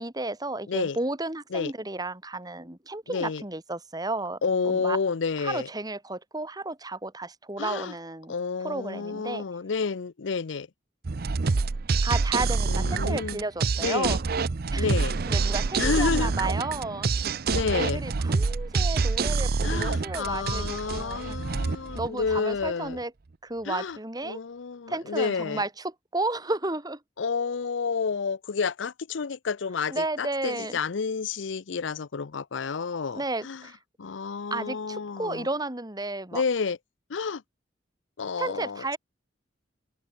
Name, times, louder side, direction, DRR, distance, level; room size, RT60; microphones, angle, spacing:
voice 1, 0.0-4.4 4.6-5.0 5.4-8.3 8.6-9.4 12.0-14.2 14.7-14.9 15.3-17.1 17.7-20.6 20.9-21.4 21.9-23.1 23.4-24.4 24.9-27.0 29.9-30.8 33.1-33.8 34.5-36.4 38.4-39.0, right 2 dB, 20° right, 2.9 m, -32 dB
voice 2, 3.1-3.4 4.4-5.7 7.6-7.9 8.3-10.7 12.7-13.4 13.8-14.2 14.8-15.1 15.8-16.3 17.5-18.0 19.6-23.0 23.7-24.0 24.2-25.6 27.2-33.6 34.0-35.5 36.3-36.8 37.1-37.4 38.2-39.0, left 5 dB, 75° left, 0.6 m, -30 dB
sound 1, 11.0-22.7, right 4 dB, 55° right, 0.6 m, -27 dB
open air
head